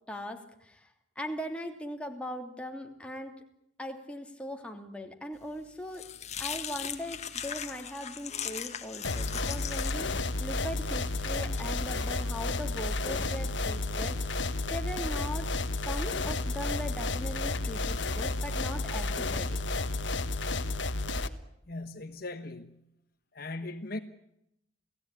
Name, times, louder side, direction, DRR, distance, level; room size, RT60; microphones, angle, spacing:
voice 1, 0.1-0.9 1.1-3.3 3.8-6.1 6.4-14.4 14.7-15.5 15.8-19.6, equal, 5° left, 2.9 m, -40 dB
sound 1, 5.4-13.7, left 8 dB, 35° left, 1.9 m, -41 dB
sound 2, 9.0-21.3, left 2 dB, 70° left, 1.5 m, -31 dB
voice 2, 21.7-22.8 23.3-24.0, left 2 dB, 50° left, 1.4 m, -39 dB
29.5 x 17.0 x 9.8 m
head